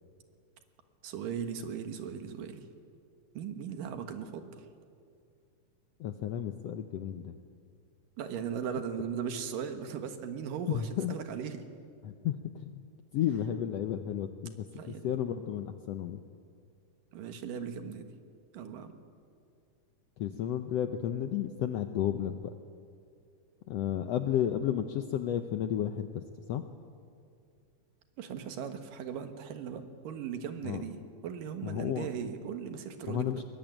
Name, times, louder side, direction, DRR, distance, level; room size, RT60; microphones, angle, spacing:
voice 1, 1.0-2.6 3.3-4.7 8.2-11.6 14.7-15.0 17.1-18.1 18.5-18.9 28.2-33.4, right 7 dB, 80° right, 8 dB, 3.1 m, -38 dB
voice 2, 6.0-7.4 10.7-11.1 12.0-12.8 13.1-16.2 20.2-22.5 23.7-26.2 26.5-26.6 30.6-30.8 31.6-32.1 33.1-33.4, left 10 dB, 75° left, 8 dB, 1.5 m, -32 dB
21.5 x 21.5 x 9.2 m, 2.3 s
omnidirectional pair, 3.8 m